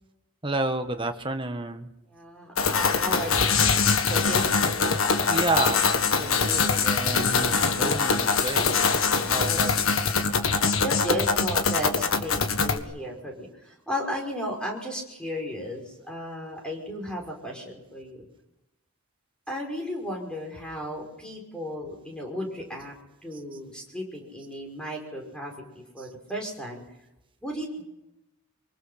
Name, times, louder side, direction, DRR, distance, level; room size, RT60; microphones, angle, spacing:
voice 1, 0.4-1.9 5.3-8.7 9.3-9.7, right 2 dB, 25° right, 6 dB, 1.5 m, -30 dB
voice 2, 2.1-3.6 4.1-4.5 9.2-9.7 10.5-18.3 19.5-22.9 23.2-26.8 27.4-27.8, equal, 5° left, 0 dB, 5.7 m, -34 dB
sound 1, 2.6-12.8, left 5 dB, 75° left, 1.7 m, -23 dB
25.0 x 24.0 x 5.8 m, 0.90 s
head